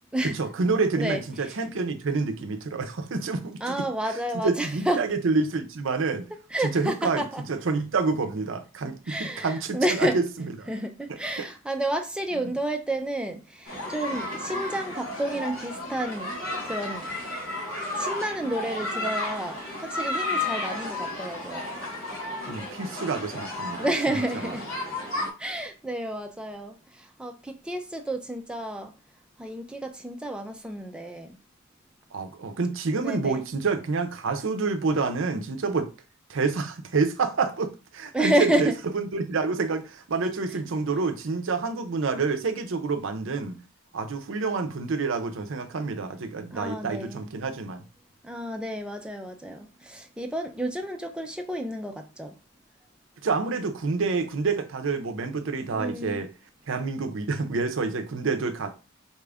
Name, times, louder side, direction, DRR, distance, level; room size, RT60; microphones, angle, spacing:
voice 1, 0.3-3.7 4.1-4.2 4.4-6.3 6.6-7.2 7.5-10.2 11.1-11.5 12.3-12.5 22.5-23.9 32.1-35.9 36.3-43.6 43.9-47.8 53.2-56.3 56.7-58.7, right 4 dB, 65° right, 0.5 m, -28 dB
voice 2, 1.0-1.6 3.6-5.0 6.5-7.4 9.1-10.2 10.7-17.1 18.0-21.7 23.8-24.7 25.4-28.9 29.4-31.4 33.0-33.4 38.1-38.8 46.5-47.3 48.2-52.3 55.7-56.3, right 1 dB, 5° right, 0.4 m, -30 dB
sound 1, 13.7-25.3, left 2 dB, 75° left, 1.5 m, -33 dB
4.3 x 2.4 x 3.4 m
head